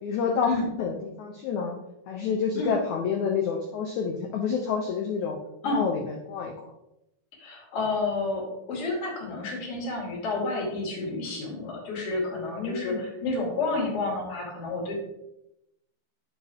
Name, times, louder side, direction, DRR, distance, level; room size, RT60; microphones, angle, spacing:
voice 1, 0.0-0.5 0.8-1.8 2.1-5.4 5.6-6.0 6.3-6.5 12.4-13.0, left 6 dB, 85° left, 2 dB, 1.6 m, -28 dB
voice 2, 7.4-14.9, left 3 dB, 40° left, -2 dB, 3.0 m, -30 dB
10.5 x 6.2 x 3.5 m, 0.87 s
omnidirectional pair, 4.5 m